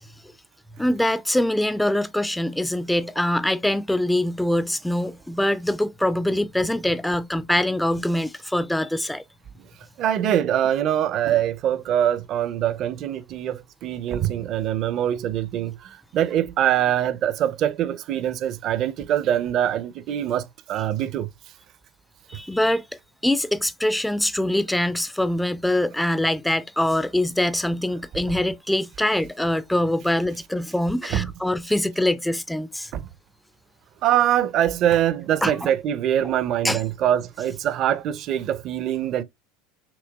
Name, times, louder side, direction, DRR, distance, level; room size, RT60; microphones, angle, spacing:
voice 1, 0.8-9.2 22.3-22.8 23.2-32.9 35.4-35.7 36.6-36.8, left 1 dB, 5° left, 0.4 m, -23 dB
voice 2, 10.0-21.3 31.1-31.3 32.9-33.1 34.0-39.2, right 11 dB, 45° right, 0.6 m, -23 dB
6.2 x 3.3 x 2.2 m
supercardioid pair, 115°, 0 cm